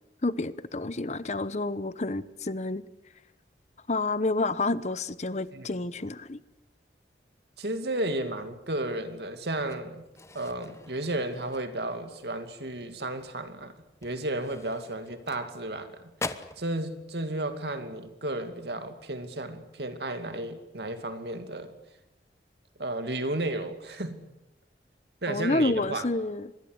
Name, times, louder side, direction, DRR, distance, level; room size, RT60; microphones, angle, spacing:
voice 1, 0.2-2.8 3.9-6.4 25.3-26.5, left 2 dB, 40° left, 0.9 m, -29 dB
voice 2, 7.6-10.0 10.3-13.7 14.0-16.1 16.6-21.7 22.8-24.3 25.2-26.0, right 1 dB, 70° right, 2.5 m, -33 dB
sound 1, 9.5-12.1 12.5-12.8 13.2-13.3 13.9-15.8 16.1-16.7, left 2 dB, 15° left, 1.0 m, -42 dB
25.5 x 21.0 x 8.0 m
head